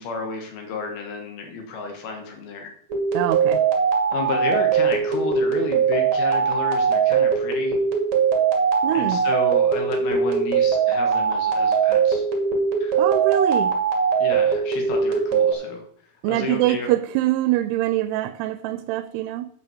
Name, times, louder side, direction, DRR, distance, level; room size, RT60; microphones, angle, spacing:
voice 1, 0.0-2.7 4.1-7.8 8.9-12.2 12.8-13.0 14.2-15.8 16.3-16.9, left 4 dB, 75° left, 3 dB, 3.2 m, -31 dB
sound 1, 2.9-15.5, right 6 dB, 55° right, 2.8 m, -21 dB
voice 2, 3.1-3.6 8.8-9.2 13.0-13.7 16.2-19.5, right 15 dB, 90° right, 12 dB, 2.6 m, -23 dB
9.0 x 5.6 x 7.1 m, 0.64 s
omnidirectional pair, 4.6 m